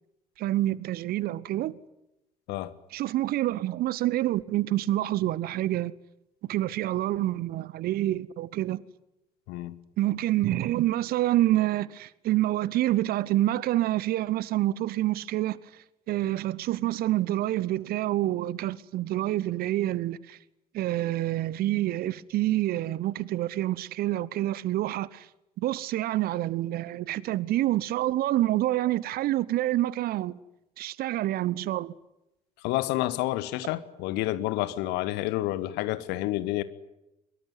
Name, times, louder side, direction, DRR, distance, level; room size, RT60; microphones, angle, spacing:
voice 1, 0.4-1.8 2.9-5.9 6.5-8.8 10.0-15.6 16.1-20.4 20.7-25.3 25.6-30.4 30.8-31.9, right 15 dB, 50° right, 1.0 m, -27 dB
voice 2, 32.6-36.6, left 16 dB, 60° left, 1.5 m, -29 dB
24.0 x 22.5 x 9.8 m
figure-of-eight pair, 55°, 20 cm